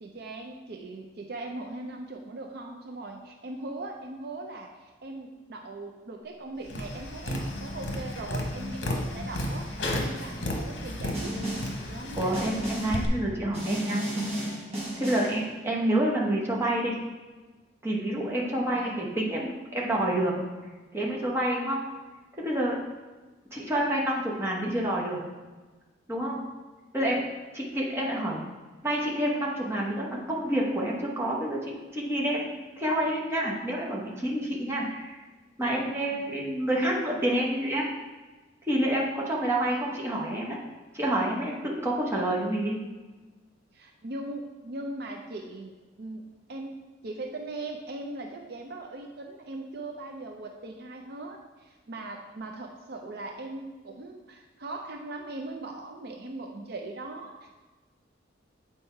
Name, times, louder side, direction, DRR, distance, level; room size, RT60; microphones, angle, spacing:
voice 1, 0.0-12.4 18.6-19.0 36.1-36.2 43.7-46.2 46.5-46.8 47.0-57.5, right 2 dB, 55° right, 2 dB, 0.5 m, -40 dB
Tap, 6.7-13.1, left 1 dB, 60° left, 1.0 m, -33 dB
Snare drum, 11.1-11.8 12.3-13.0 13.5-15.4, right 1 dB, 30° right, 1.7 m, -33 dB
voice 2, 12.2-14.0 15.0-17.0 17.8-20.3 20.9-21.8 22.4-22.8 23.5-25.2 26.1-26.4 26.9-27.2 27.5-28.4 28.8-35.2 35.6-37.8 38.7-40.6 40.9-42.8, right 1 dB, 15° right, -4 dB, 1.1 m, -28 dB
8.0 x 4.3 x 4.5 m, 1.3 s
head